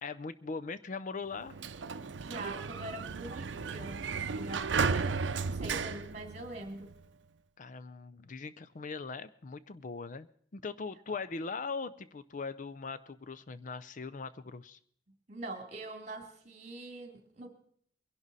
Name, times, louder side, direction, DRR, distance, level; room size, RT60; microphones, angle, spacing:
voice 1, 0.0-1.6 7.6-10.3 10.5-14.8, left 4 dB, 45° left, 14 dB, 0.5 m, -40 dB
Sliding door, 1.3-7.0, right 5 dB, 75° right, 0.6 m, -34 dB
voice 2, 2.2-7.0 15.3-17.5, right 2 dB, 40° right, 4 dB, 2.7 m, -44 dB
22.5 x 11.5 x 4.1 m, 0.62 s
head